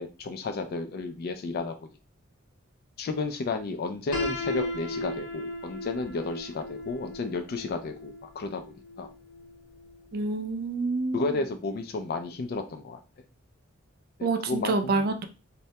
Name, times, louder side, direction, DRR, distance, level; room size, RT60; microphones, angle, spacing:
voice 1, 0.0-1.9 3.0-8.6 9.0-9.1 11.1-13.0 14.2-15.1, left 3 dB, 45° left, 0.3 m, -32 dB
Piano, 4.1-10.0, left 2 dB, 85° left, 0.9 m, -36 dB
voice 2, 10.1-11.3 14.2-15.2, right 3 dB, 45° right, 0.3 m, -27 dB
2.1 x 2.1 x 2.7 m
head